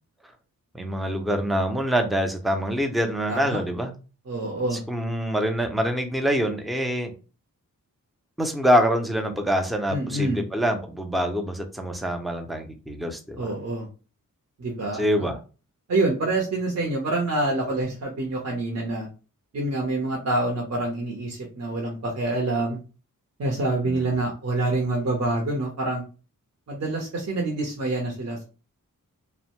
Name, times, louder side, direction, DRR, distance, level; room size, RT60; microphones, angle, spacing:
voice 1, 0.7-3.9 4.9-7.1 8.4-13.5 15.0-15.4 23.8-24.1, equal, ahead, 6 dB, 0.4 m, -25 dB
voice 2, 3.3-3.6 4.3-4.8 9.9-10.4 13.4-13.9 14.6-15.3 15.9-19.1 19.5-22.8 23.4-26.0 26.7-28.4, right 2 dB, 50° right, -1 dB, 0.7 m, -26 dB
2.5 x 2.1 x 2.9 m, 0.33 s
wide cardioid pair, 95°, 33 cm